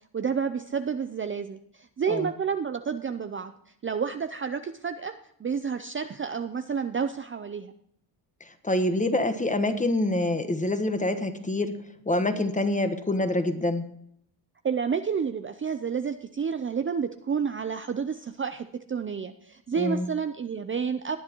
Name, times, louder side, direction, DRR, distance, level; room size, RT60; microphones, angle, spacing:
voice 1, 0.1-3.5 3.8-5.1 5.4-7.7 14.6-21.2, right 6 dB, 25° right, 8 dB, 0.6 m, -30 dB
voice 2, 8.6-11.8 12.1-13.8 19.8-20.1, left 1 dB, 15° left, 9 dB, 1.3 m, -26 dB
18.5 x 9.4 x 3.0 m, 0.70 s
cardioid pair, 85°, 46 cm